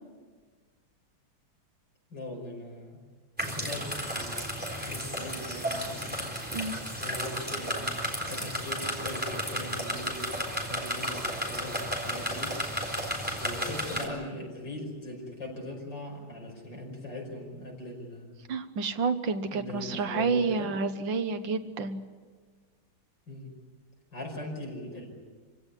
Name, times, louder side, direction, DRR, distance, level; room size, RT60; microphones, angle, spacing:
voice 1, 2.1-3.0 3.4-6.2 7.0-12.6 13.4-18.4 19.5-20.7 23.3-23.5 24.1-25.1, left 1 dB, 65° left, 0 dB, 6.3 m, -40 dB
sound 1, 3.4-14.1, equal, 5° right, 3.8 m, -33 dB
voice 2, 18.5-22.0, right 4 dB, 70° right, 9 dB, 1.8 m, -29 dB
26.5 x 16.5 x 9.9 m, 1.5 s
omnidirectional pair, 2.1 m